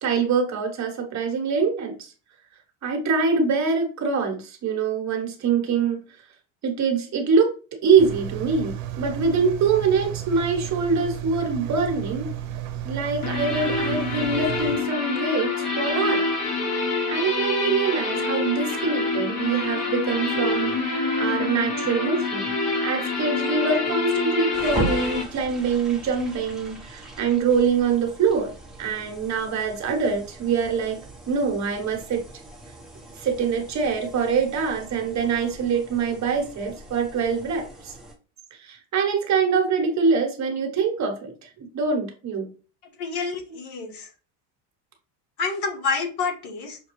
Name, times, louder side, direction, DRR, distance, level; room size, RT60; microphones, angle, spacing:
voice 1, 0.0-2.1 2.8-6.0 6.6-7.5 7.8-12.3 12.8-16.2 17.1-20.7 21.2-22.5 22.8-28.5 28.8-31.0 31.3-32.2 33.1-37.9 38.6-42.5, right 5 dB, 35° right, 3 dB, 1.1 m, -24 dB
Engine, 8.0-14.8, right 12 dB, 75° right, 0.8 m, -33 dB
sound 1, 13.2-25.2, left 3 dB, 35° left, 0.9 m, -26 dB
sound 2, 24.5-38.1, right 2 dB, ahead, 0.9 m, -39 dB
voice 2, 43.0-44.1 45.4-46.8, left 4 dB, 55° left, 2 dB, 1.5 m, -28 dB
5.9 x 2.2 x 3.1 m, 0.36 s
cardioid pair, 135°, 46 cm